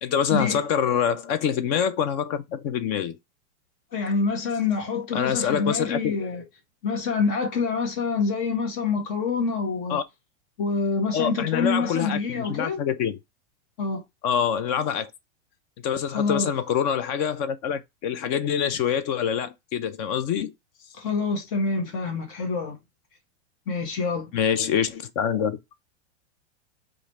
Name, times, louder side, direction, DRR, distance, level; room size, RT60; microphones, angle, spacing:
voice 1, 0.0-3.2 5.1-6.2 9.9-10.0 11.1-13.2 14.2-15.1 15.8-20.5 24.3-25.6, left 8 dB, 30° left, 0.4 m, -25 dB
voice 2, 3.9-6.4 6.8-10.0 10.6-12.8 13.8-14.0 16.1-16.5 20.9-22.8 23.7-24.3, left 4 dB, 45° left, 1.3 m, -26 dB
3.1 x 2.5 x 4.0 m
hypercardioid pair, 135°, 35 cm